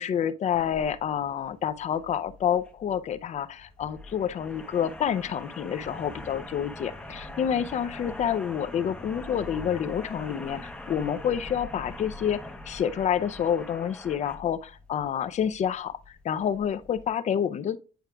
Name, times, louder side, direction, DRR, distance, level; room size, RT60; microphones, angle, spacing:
voice 1, 0.0-17.8, left 8 dB, 45° left, 0.5 m, -28 dB
sound 1, 0.5-17.1, left 1 dB, 5° left, 0.7 m, -43 dB
9.1 x 4.7 x 2.2 m
cardioid pair, 110°, 17 cm